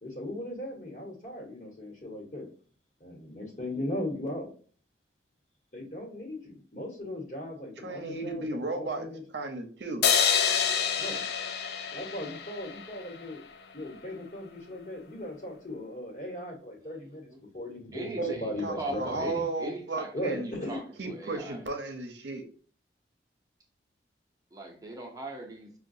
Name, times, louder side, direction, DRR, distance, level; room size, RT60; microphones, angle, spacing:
voice 1, 0.0-2.5 3.0-4.5 5.7-9.2 11.0-11.2 11.9-13.4 13.7-19.5 20.1-20.8, left 1 dB, 40° left, 0 dB, 1.2 m, -38 dB
voice 2, 7.8-9.1 9.3-10.1 18.2-18.3 18.6-20.5 21.0-22.4, right 2 dB, 70° right, 5 dB, 0.7 m, -34 dB
sound 1, 10.0-13.3, left 7 dB, 60° left, 0.4 m, -27 dB
voice 3, 17.9-21.6 24.5-25.7, right 1 dB, 20° right, 1 dB, 0.6 m, -40 dB
5.6 x 2.3 x 2.6 m, 0.42 s
head